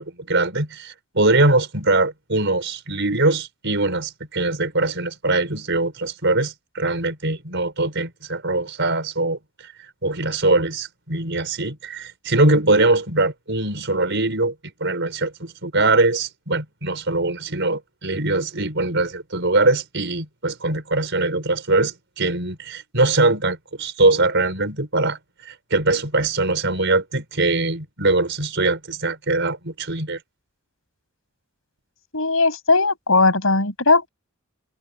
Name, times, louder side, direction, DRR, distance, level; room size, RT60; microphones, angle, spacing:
voice 1, 0.0-14.5 14.8-30.2, right 2 dB, 60° right, 5.5 m, -22 dB
voice 2, 32.1-34.1, left 3 dB, 75° left, 7.3 m, -18 dB
head